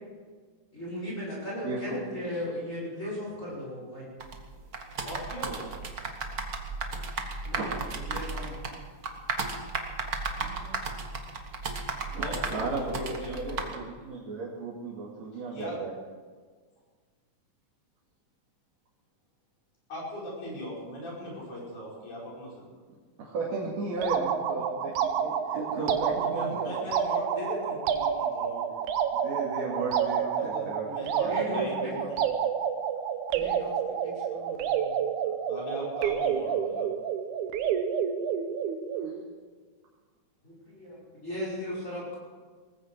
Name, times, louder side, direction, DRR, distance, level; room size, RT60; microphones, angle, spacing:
voice 1, 0.7-4.1 7.4-7.8 8.1-8.5 12.1-12.3 25.5-26.4 30.8-30.9 31.2-31.9 33.3-33.7 34.0-35.0 40.4-42.2, left 1 dB, 25° left, -6 dB, 5.6 m, -37 dB
voice 2, 1.6-2.0 7.5-7.7 8.1-8.2 12.1-12.2 12.5-15.9 23.2-26.8 29.2-30.9 39.0-39.1, right 3 dB, 65° right, -5 dB, 3.4 m, -35 dB
sound 1, 4.2-13.8, right 4 dB, 40° right, 1.4 m, -35 dB
voice 3, 5.0-5.8 10.3-10.8 12.2-13.8 15.5-15.8 19.9-22.7 25.8-28.7 30.2-32.2 35.5-36.9, equal, 75° left, -4 dB, 6.9 m, -39 dB
sound 2, 24.0-39.2, right 8 dB, 80° right, 2.4 m, -29 dB
19.0 x 15.0 x 4.7 m, 1.5 s
omnidirectional pair, 3.5 m